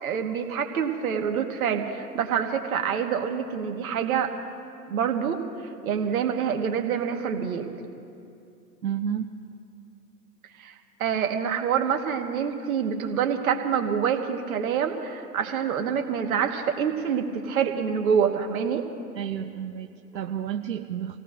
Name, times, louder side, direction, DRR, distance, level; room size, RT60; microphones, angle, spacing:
voice 1, 0.0-4.3 4.9-5.4 5.8-7.7 10.6-10.7 11.0-18.8, right 7 dB, 55° right, 5 dB, 1.6 m, -26 dB
voice 2, 8.8-9.3 19.1-21.2, right 9 dB, 80° right, 6 dB, 0.8 m, -31 dB
27.5 x 17.5 x 2.6 m, 2.6 s
figure-of-eight pair, 115°, 49 cm